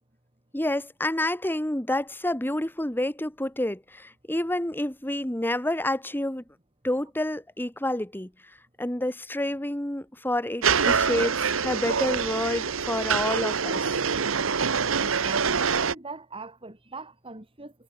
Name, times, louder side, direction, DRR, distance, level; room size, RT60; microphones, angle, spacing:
voice 1, 0.5-6.4 6.8-8.3 8.8-14.0, left 1 dB, 10° left, 1.8 m, -29 dB
sound 1, 10.6-15.9, right 6 dB, 70° right, 1.1 m, -25 dB
voice 2, 15.0-17.7, right 3 dB, 25° right, 2.9 m, -41 dB
head